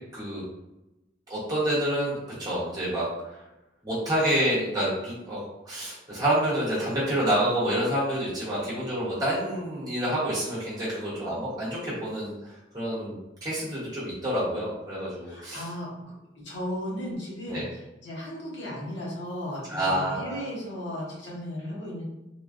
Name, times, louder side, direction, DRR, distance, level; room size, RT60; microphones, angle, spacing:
voice 1, 0.1-0.4 1.3-3.4 3.8-15.6 17.5-17.7 19.7-20.4, right 1 dB, 20° right, -9 dB, 1.1 m, -28 dB
voice 2, 15.2-15.9 16.3-22.0, equal, 70° left, -5 dB, 1.1 m, -35 dB
3.3 x 2.3 x 2.5 m, 0.96 s
head